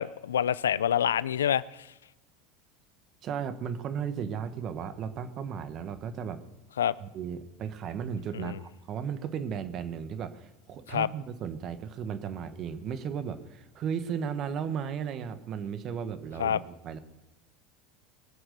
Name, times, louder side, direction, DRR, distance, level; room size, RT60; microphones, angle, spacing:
voice 1, 0.0-1.6 6.8-6.9 8.3-8.6 10.9-11.1 16.4-16.6, left 9 dB, 90° left, 20 dB, 0.4 m, -26 dB
voice 2, 3.2-6.4 7.0-17.0, right 7 dB, 45° right, 11 dB, 1.4 m, -35 dB
21.5 x 7.9 x 6.7 m, 0.99 s
hypercardioid pair, 85°, 0 cm